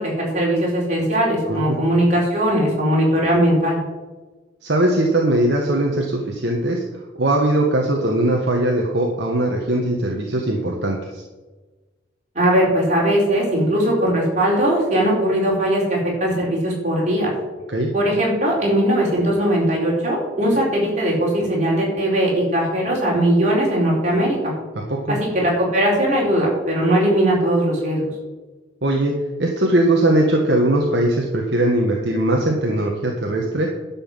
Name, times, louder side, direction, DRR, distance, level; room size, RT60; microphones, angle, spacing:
voice 1, 0.0-3.8 12.3-17.3 17.9-24.5 25.1-28.0, right 1 dB, 35° right, -3 dB, 4.1 m, -19 dB
voice 2, 4.6-6.8 7.2-11.2 17.7-17.9 24.9-25.2 28.8-29.1 29.4-33.7, right 1 dB, 60° right, 0 dB, 1.4 m, -20 dB
11.5 x 5.7 x 7.3 m, 1.2 s
head